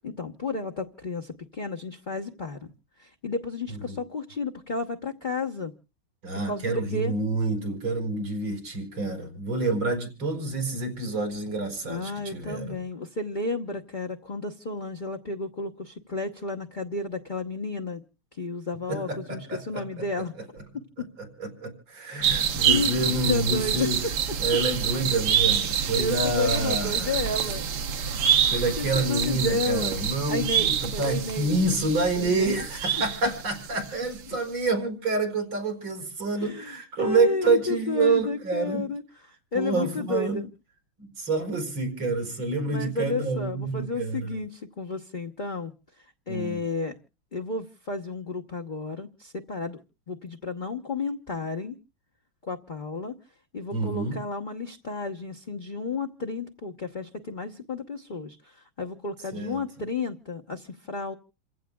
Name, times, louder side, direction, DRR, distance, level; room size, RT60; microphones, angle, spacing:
voice 1, 0.0-2.7 3.0-5.7 6.5-7.1 11.9-18.0 18.4-20.3 21.0-21.1 22.1-23.9 25.9-27.6 28.5-31.5 32.2-32.6 34.3-34.4 36.4-39.0 39.5-40.5 42.7-45.7 46.3-47.0 47.3-49.8 50.1-51.8 52.4-53.2 53.5-61.1, left 3 dB, 40° left, 2 dB, 0.7 m, -32 dB
voice 2, 6.2-12.8 18.9-20.0 21.2-24.0 24.4-27.2 28.5-38.8 39.5-40.4 41.0-44.3 46.3-46.6 53.7-54.2 59.3-59.6, right 3 dB, 90° right, 4 dB, 5.3 m, -28 dB
sound 1, 22.2-33.9 34.2-34.3, right 8 dB, 60° right, 1.4 m, -27 dB
28.5 x 15.5 x 2.2 m, 0.34 s
omnidirectional pair, 2.2 m